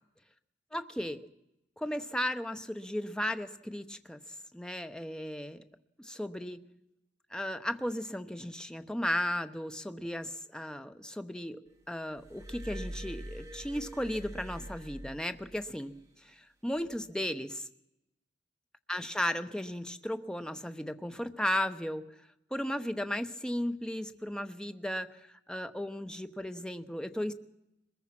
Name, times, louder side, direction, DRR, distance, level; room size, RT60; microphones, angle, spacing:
voice 1, 0.7-1.2 1.8-4.2 4.5-5.6 6.0-6.6 7.3-11.6 11.9-17.7 18.9-22.1 22.5-27.3, left 1 dB, 5° left, 9 dB, 0.9 m, -35 dB
Glass, 12.2-15.8 16.8-17.0, right 1 dB, 15° right, 2.8 m, -44 dB
22.5 x 21.0 x 6.0 m, 0.87 s
head